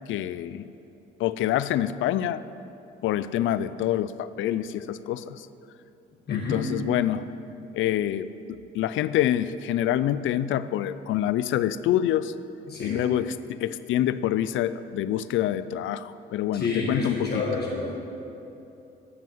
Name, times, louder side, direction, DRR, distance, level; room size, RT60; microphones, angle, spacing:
voice 1, 0.1-0.7 1.2-2.4 3.0-5.5 6.3-7.2 7.7-12.3 12.8-17.4, left 12 dB, 80° left, 15 dB, 0.4 m, -26 dB
voice 2, 6.3-6.6 12.7-13.0 16.5-18.0, left 3 dB, 55° left, -4 dB, 2.0 m, -29 dB
12.5 x 5.5 x 7.7 m, 2.9 s
cardioid pair, 90°, 20 cm